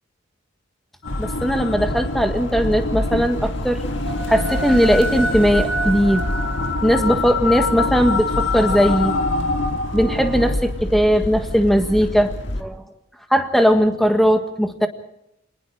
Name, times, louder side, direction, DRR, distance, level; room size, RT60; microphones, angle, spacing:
sound 1, 1.0-10.5, left 2 dB, 75° left, 2.2 m, -26 dB
sound 2, 1.1-12.6, left 1 dB, 60° left, 1.9 m, -28 dB
voice 1, 1.2-3.8 4.3-6.3 6.8-9.2 9.9-12.8 13.3-14.9, equal, ahead, 5 dB, 1.6 m, -18 dB
28.0 x 20.0 x 5.0 m, 0.81 s
head